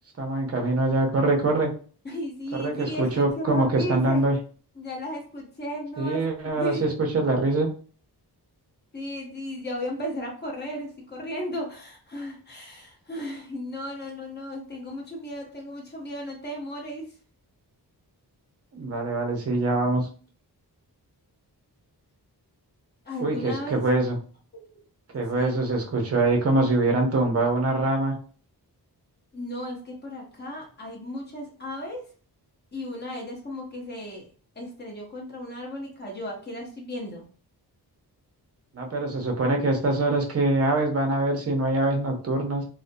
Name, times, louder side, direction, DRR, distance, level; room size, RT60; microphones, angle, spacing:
voice 1, 0.2-1.7 2.5-4.4 6.0-7.7 18.7-20.1 23.2-24.2 25.1-28.2 38.7-42.6, right 2 dB, 40° right, 2 dB, 0.6 m, -24 dB
voice 2, 2.0-4.2 4.8-6.8 8.9-17.1 23.0-23.8 24.5-24.7 25.1-25.5 29.3-32.1 32.7-34.3 34.6-37.2, equal, 25° left, -1 dB, 0.8 m, -35 dB
2.4 x 2.1 x 2.5 m, 0.41 s
wide cardioid pair, 165°, 40 cm